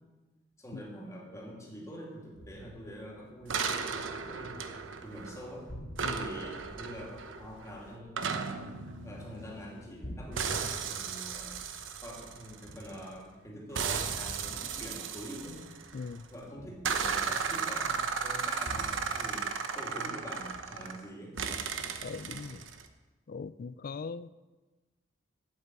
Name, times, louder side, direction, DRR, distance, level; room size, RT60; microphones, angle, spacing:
voice 1, 0.6-4.7 5.0-5.7 6.0-8.4 9.0-11.6 12.0-15.6 16.3-19.5 19.7-21.4, equal, 15° left, 2.7 m, -45 dB
sound 1, 2.3-4.6 4.9-5.4 5.7-9.4 9.8-13.4 14.3-17.8 18.6-20.2 20.5-21.0, equal, 75° left, 1.8 m, -49 dB
sound 2, 3.5-5.5 6.0-10.0 10.4-13.1 13.7-16.2 16.8-21.0 21.4-22.8, right 5 dB, 90° right, 0.9 m, -35 dB
voice 2, 15.9-16.3 22.0-22.6 23.3-24.3, left 4 dB, 50° left, 0.4 m, -40 dB
8.8 x 8.5 x 7.6 m
head